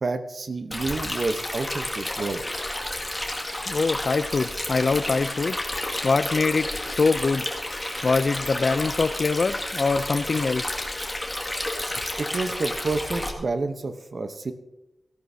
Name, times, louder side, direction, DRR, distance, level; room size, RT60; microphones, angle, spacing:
voice 1, 0.0-2.4 11.5-11.7 12.2-14.5, right 3 dB, 50° right, 8 dB, 0.9 m, -29 dB
Stream, 0.7-13.3, left 1 dB, 15° left, 2.0 m, -31 dB
voice 2, 3.7-5.6 6.0-7.5 8.0-10.8, left 4 dB, 50° left, 13 dB, 0.4 m, -24 dB
17.5 x 14.5 x 2.7 m, 0.95 s
wide cardioid pair, 110°, 0 cm